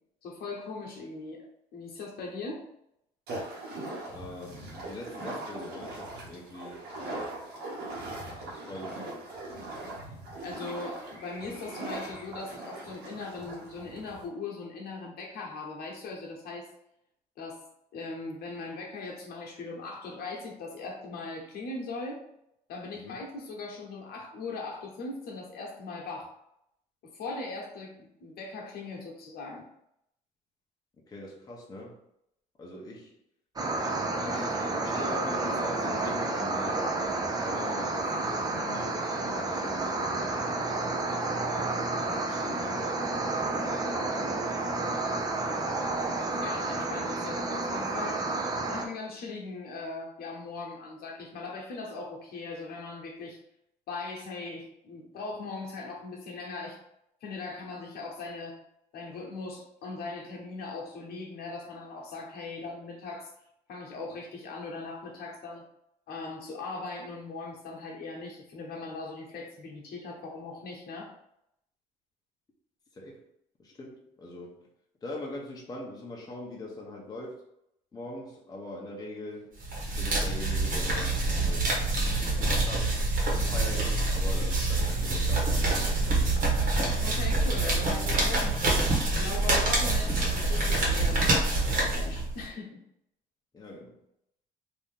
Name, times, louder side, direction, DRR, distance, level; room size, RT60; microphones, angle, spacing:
voice 1, 0.2-1.5 1.7-2.6 10.0-10.1 10.4-16.7 17.4-17.6 17.9-22.2 22.7-26.4 27.0-29.7 46.4-48.3 48.7-53.4 53.9-56.8 57.2-58.6 58.9-63.3 63.7-65.7 66.1-71.1 87.0-88.6 89.2-92.7, left 3 dB, 65° left, -1 dB, 1.0 m, -39 dB
sound 1, 3.3-14.3, right 2 dB, 75° right, 1.3 m, -40 dB
voice 2, 4.1-7.4 8.4-9.3 23.0-23.2 31.1-32.0 32.6-33.1 33.8-33.9 34.2-36.9 37.4-40.9 41.7-43.3 72.9-73.3 73.6-74.7 75.0-77.4 77.9-79.6 80.0-81.7 82.2-83.0 83.3-86.2 93.5-94.0, left 2 dB, 25° left, -2 dB, 0.8 m, -42 dB
sound 2, 33.6-48.9, right 2 dB, 20° right, 0.6 m, -30 dB
sound 3, 79.6-92.5, right 2 dB, 55° right, 1.3 m, -26 dB
3.0 x 2.7 x 3.7 m, 0.77 s
cardioid pair, 110°, 17 cm